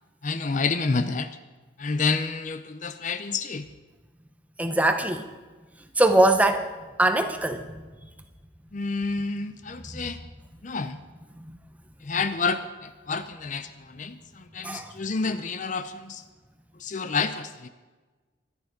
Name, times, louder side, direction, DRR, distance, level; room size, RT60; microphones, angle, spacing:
voice 1, 0.2-1.4 1.8-3.7 8.7-10.2 10.6-11.0 12.0-16.2 16.8-17.7, left 4 dB, 40° left, 0.6 m, -29 dB
voice 2, 4.6-5.3 6.0-6.7 7.0-8.1 9.9-10.0 11.3-11.6 14.6-14.9, right 1 dB, 5° right, 0.9 m, -22 dB
24.5 x 9.6 x 5.1 m
head